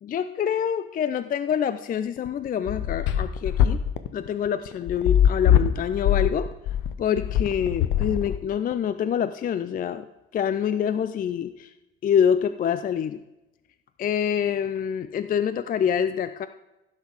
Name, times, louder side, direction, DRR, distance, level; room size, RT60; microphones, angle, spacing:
voice 1, 0.0-3.8 4.1-6.5 7.0-10.1 10.3-11.7 12.0-13.2 14.0-16.5, left 8 dB, 30° left, 12 dB, 0.5 m, -26 dB
sound 1, 2.2-8.7, left 10 dB, 60° left, 0.8 m, -22 dB
16.0 x 6.4 x 4.9 m, 0.97 s
figure-of-eight pair, 50°, 31 cm